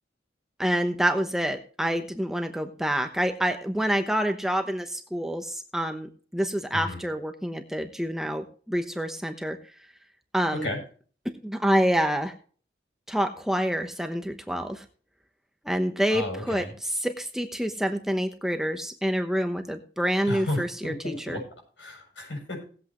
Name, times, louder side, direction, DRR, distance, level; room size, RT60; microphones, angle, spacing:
voice 1, 0.6-9.6 10.3-10.7 11.4-12.3 13.1-14.8 15.6-21.4, equal, ahead, 6 dB, 0.9 m, -27 dB
voice 2, 16.1-16.7 20.3-21.4 21.8-22.7, left 1 dB, 90° left, 1 dB, 7.3 m, -33 dB
18.5 x 8.3 x 3.1 m, 0.42 s
head